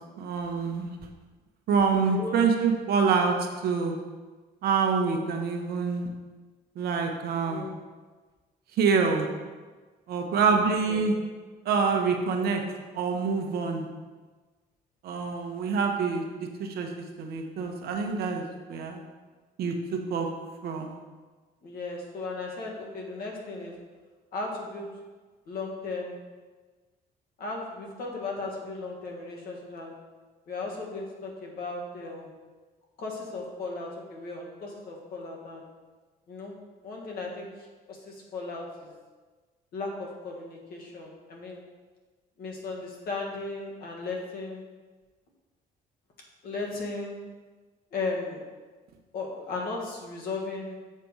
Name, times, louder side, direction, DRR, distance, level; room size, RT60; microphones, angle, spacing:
voice 1, 0.2-0.9 1.7-3.3 3.6-4.0 4.6-6.1 6.8-7.7 8.8-9.3 10.1-11.1 11.6-12.6 12.9-13.9 15.0-16.2 16.6-16.9 17.2-19.0 19.6-20.3 20.6-21.0, right 5 dB, 65° right, 3 dB, 1.0 m, -26 dB
voice 2, 2.0-2.4 7.5-7.8 10.9-11.1 21.6-23.7 24.3-24.9 25.5-26.2 27.4-29.9 30.5-32.3 33.0-35.6 36.3-36.5 36.8-37.5 37.9-38.9 39.7-41.6 42.4-44.6 46.4-47.2 47.9-48.4 49.1-50.8, left 3 dB, 60° left, -1 dB, 1.7 m, -36 dB
7.4 x 3.4 x 5.4 m, 1.3 s
cardioid pair, 110°, 17 cm